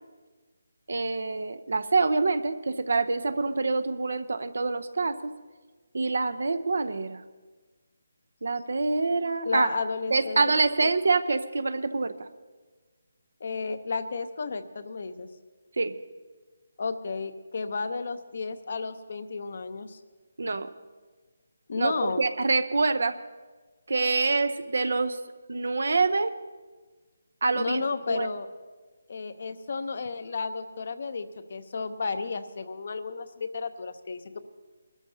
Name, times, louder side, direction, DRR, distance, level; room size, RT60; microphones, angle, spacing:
voice 1, 0.9-5.3 5.9-7.2 8.4-9.7 10.1-12.3 15.8-15.9 20.4-20.7 21.8-23.2 23.9-25.2 25.5-26.3 27.4-27.8 28.1-28.3, right 3 dB, 70° right, 11 dB, 0.7 m, -26 dB
voice 2, 9.4-10.4 10.8-10.9 13.4-15.3 16.8-20.0 21.7-22.3 27.5-28.5 29.1-34.4, left 4 dB, 55° left, 10 dB, 0.8 m, -32 dB
23.0 x 13.0 x 2.8 m, 1.3 s
figure-of-eight pair, 160°, 0 cm